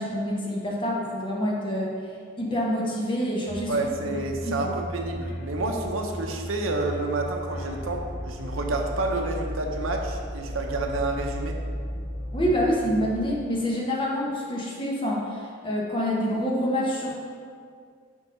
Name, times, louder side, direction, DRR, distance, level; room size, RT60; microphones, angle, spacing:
voice 1, 0.0-1.9 2.4-3.9 4.4-4.7 12.3-17.1, equal, 25° left, -3 dB, 1.1 m, -27 dB
sound 1, 3.5-13.3, equal, 55° left, 1.3 m, -35 dB
voice 2, 3.7-11.6, right 2 dB, 80° right, 2 dB, 0.8 m, -29 dB
7.4 x 3.7 x 5.5 m, 2.1 s
head